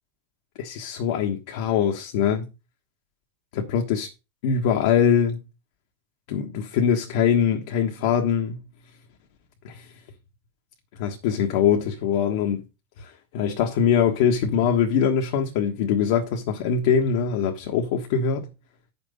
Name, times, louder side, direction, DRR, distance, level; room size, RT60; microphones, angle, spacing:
voice 1, 0.6-2.5 3.5-4.1 4.4-5.4 6.3-8.6 9.6-9.9 11.0-12.6 13.0-18.5, left 7 dB, 70° left, 1.4 m, -23 dB
8.3 x 6.1 x 5.3 m
hypercardioid pair, 105°, 0 cm